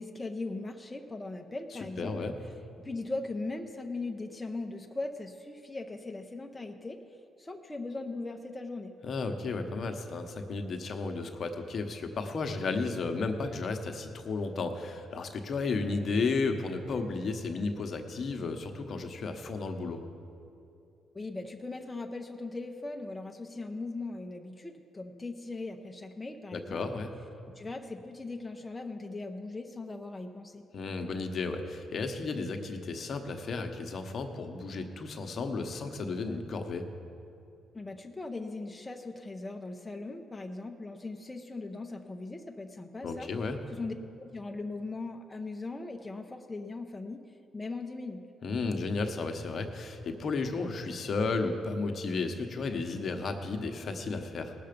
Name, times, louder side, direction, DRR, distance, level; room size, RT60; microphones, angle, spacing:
voice 1, 0.0-2.2 2.8-7.0 7.4-9.0 21.1-27.0 27.6-30.6 37.7-43.3 43.7-47.2 47.5-48.2, left 3 dB, 15° left, 3 dB, 0.7 m, -39 dB
voice 2, 1.7-2.3 9.0-20.0 26.5-27.1 30.7-36.9 43.0-43.6 48.4-54.5, left 3 dB, 50° left, 5 dB, 1.0 m, -33 dB
18.0 x 6.8 x 5.2 m, 2.7 s
cardioid pair, 90°, 0 cm